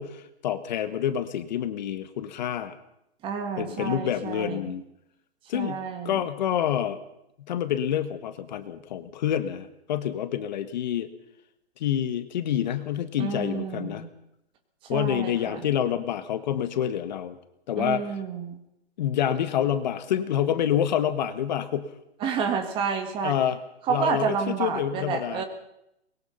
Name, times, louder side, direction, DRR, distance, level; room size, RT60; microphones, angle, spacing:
voice 1, 0.0-2.8 3.6-4.8 5.5-5.8 6.0-7.0 7.5-11.1 11.8-14.0 14.9-17.4 17.7-18.0 19.0-21.9 23.2-23.6 23.9-25.4, left 10 dB, 40° left, 11 dB, 1.7 m, -27 dB
voice 2, 3.2-4.7 5.5-6.2 13.2-14.1 14.8-15.7 17.8-18.6 22.2-23.3 23.8-25.4, right 6 dB, 15° right, 7 dB, 1.7 m, -30 dB
23.5 x 21.5 x 5.7 m, 0.81 s
hypercardioid pair, 160°, 34 cm